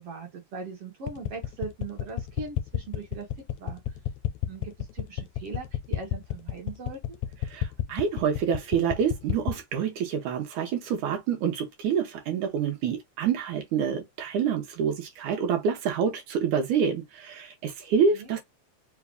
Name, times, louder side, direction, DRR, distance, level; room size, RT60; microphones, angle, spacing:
voice 1, 0.0-3.3 3.6-3.8 4.5-7.2 18.1-18.3, right 4 dB, 60° right, 1.7 m, -40 dB
sound 1, 1.1-9.6, left 13 dB, 85° left, 2.0 m, -30 dB
voice 2, 7.5-18.4, right 7 dB, 85° right, 2.3 m, -27 dB
5.1 x 2.3 x 3.4 m
omnidirectional pair, 3.4 m